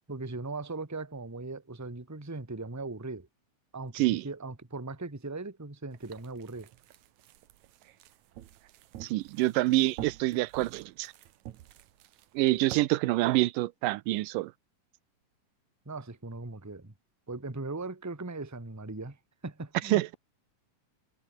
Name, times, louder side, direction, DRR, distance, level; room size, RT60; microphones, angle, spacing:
voice 1, 0.1-3.3 3.7-6.7 15.8-16.9 17.3-19.2 19.4-20.0, right 3 dB, 5° right, 1.4 m, -39 dB
sound 1, 5.9-12.8, right 13 dB, 65° right, 2.3 m, -48 dB
voice 2, 9.0-11.1 12.3-14.5 19.8-20.2, right 18 dB, 85° right, 2.3 m, -26 dB
omnidirectional pair, 3.8 m